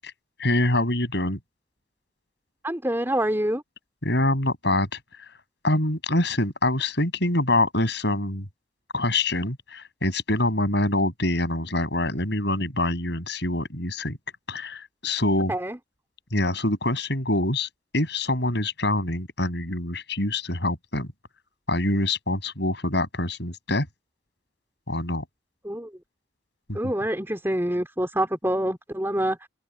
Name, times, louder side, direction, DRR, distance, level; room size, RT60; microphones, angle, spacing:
voice 1, 0.4-1.4 4.0-5.0 5.3-5.4 5.6-8.4 8.9-14.2 14.5-15.5 16.3-21.1 21.7-23.9 24.9-25.2 26.7-26.8, left 1 dB, 60° left, 7.4 m, -25 dB
voice 2, 2.6-3.6 15.5-15.8 25.6-25.9 26.7-29.5, right 1 dB, 10° right, 3.8 m, -26 dB
open air
head